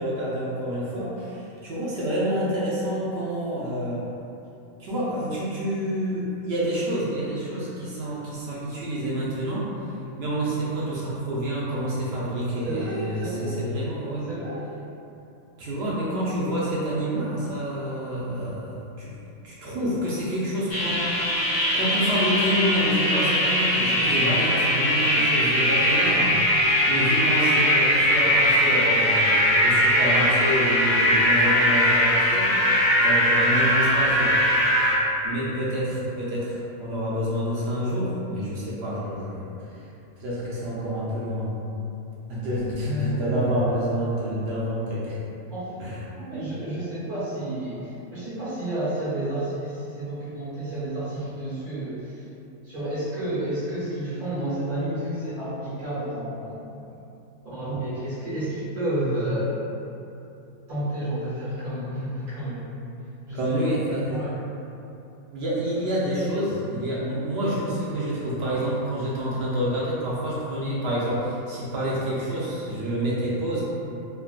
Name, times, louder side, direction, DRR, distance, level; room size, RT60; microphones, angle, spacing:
voice 1, 0.0-4.1 4.8-9.7 10.2-14.3 15.6-19.1 19.4-21.5 21.7-34.4 35.2-39.8 40.2-41.6 42.3-45.2 45.8-46.0 63.3-64.2 65.3-73.6, equal, 65° right, -7 dB, 0.7 m, -28 dB
voice 2, 12.6-13.5 14.3-14.6 23.7-24.4 25.0-25.3 42.8-43.8 45.5-45.7 46.2-52.2 52.6-56.6 57.4-59.5 60.7-62.7 63.3-63.8 64.0-64.4, right 1 dB, 85° right, -13 dB, 1.5 m, -31 dB
sound 1, 20.7-34.9, equal, 45° left, 0.6 m, -21 dB
3.5 x 2.2 x 2.3 m, 2.8 s
omnidirectional pair, 1.5 m